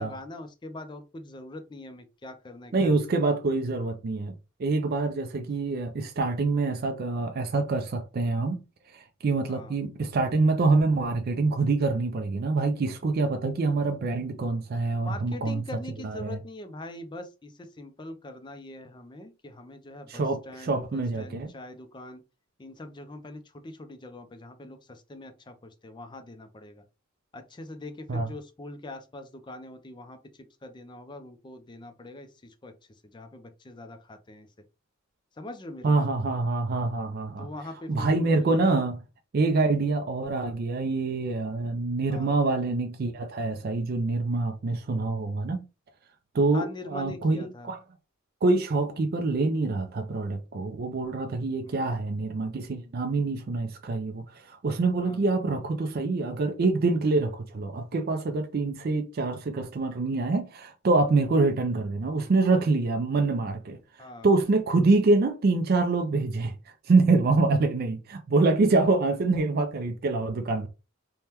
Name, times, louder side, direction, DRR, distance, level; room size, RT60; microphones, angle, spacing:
voice 1, 0.0-3.1 9.5-9.7 15.0-22.2 22.6-26.8 27.3-30.2 30.6-32.7 33.0-34.5 35.4-36.1 37.4-38.8 42.1-42.3 46.5-47.7 51.7-51.9 55.0-55.2 64.0-64.3, left 2 dB, 20° left, 0.4 m, -43 dB
voice 2, 2.7-4.3 4.6-8.6 8.9-15.6 16.0-16.4 20.1-21.5 28.1-28.3 35.8-37.5 37.9-39.0 39.3-45.6 46.3-47.8 48.4-63.8 64.2-70.7, right 3 dB, 45° right, 0.4 m, -25 dB
3.4 x 2.2 x 2.8 m
head